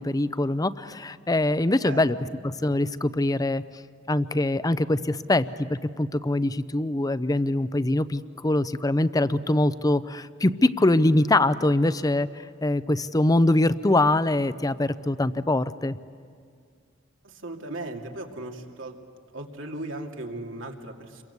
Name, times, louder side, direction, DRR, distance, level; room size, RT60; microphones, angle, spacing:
voice 1, 0.0-2.2 2.4-3.6 4.1-12.3 12.6-16.0, left 1 dB, 20° left, 14 dB, 0.6 m, -23 dB
voice 2, 17.2-19.0 19.3-21.2, right 2 dB, 85° right, 2 dB, 2.5 m, -37 dB
28.5 x 23.0 x 8.1 m, 2.1 s
head